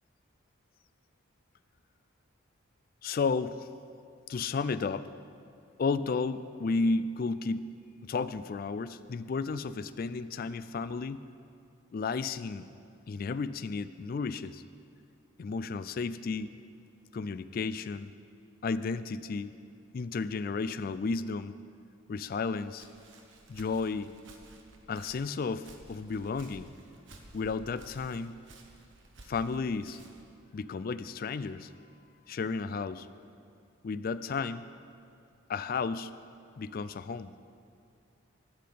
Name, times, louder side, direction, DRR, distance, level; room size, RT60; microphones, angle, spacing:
voice 1, 3.0-3.7 4.3-5.1 5.8-7.7 8.0-11.3 11.9-12.7 13.1-14.6 15.4-16.6 17.1-18.1 18.6-19.5 19.9-21.5 22.1-22.9 23.5-24.2 24.9-26.7 27.3-28.4 29.3-30.0 30.5-31.7 32.3-33.1 33.8-34.7 35.5-36.1 36.6-37.3, left 4 dB, 45° left, 13 dB, 0.3 m, -33 dB
Walk footsteps, 22.4-30.3, right 2 dB, 60° right, 1.1 m, -54 dB
12.0 x 5.8 x 8.5 m, 2.5 s
head